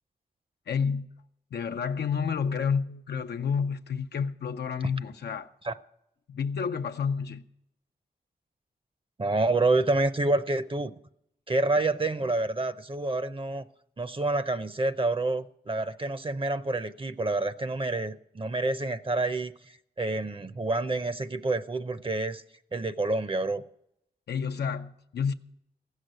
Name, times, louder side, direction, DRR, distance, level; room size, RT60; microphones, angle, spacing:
voice 1, 0.7-1.1 1.5-5.5 6.3-7.4 24.3-25.3, left 6 dB, 90° left, 0.5 m, -30 dB
voice 2, 9.2-10.9 11.5-13.7 14.0-22.4 22.7-23.6, right 2 dB, 30° right, 0.6 m, -28 dB
15.0 x 6.5 x 8.9 m
cardioid pair, 55°, 17 cm